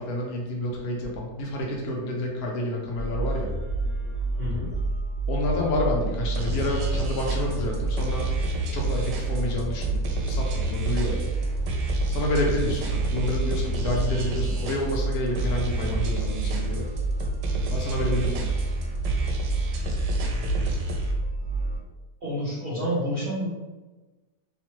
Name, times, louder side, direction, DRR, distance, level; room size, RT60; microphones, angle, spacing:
voice 1, 0.0-3.5 5.3-8.2 8.7-11.3 12.1-16.9 17.7-18.6, left 1 dB, 70° left, -1 dB, 1.1 m, -29 dB
sound 1, 2.9-21.8, right 2 dB, 50° left, 1.3 m, -29 dB
voice 2, 4.4-4.7 22.2-23.5, equal, 55° right, -10 dB, 0.6 m, -29 dB
sound 2, 6.3-21.1, right 2 dB, 85° right, 1.1 m, -31 dB
3.0 x 2.1 x 3.0 m, 1.2 s
omnidirectional pair, 1.7 m